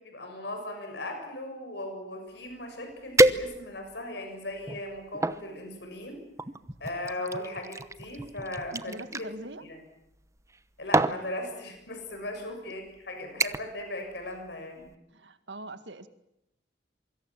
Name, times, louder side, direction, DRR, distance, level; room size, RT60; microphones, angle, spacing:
voice 1, 0.0-6.2 6.8-9.0 9.7-9.8 10.8-14.9, left 1 dB, 70° left, 4 dB, 7.1 m, -38 dB
sound 1, 2.5-2.6 3.2-3.9 4.6-5.4 6.4-9.3 10.4-10.6 10.9-11.2 12.1-12.3 12.7-13.0 13.4-13.8 14.1-14.5 14.8-14.9, right 2 dB, 15° right, 1.0 m, -27 dB
voice 2, 8.7-9.7 12.2-12.6 15.1-16.1, right 1 dB, 80° right, 10 dB, 2.1 m, -43 dB
27.0 x 25.0 x 7.5 m, 0.84 s
head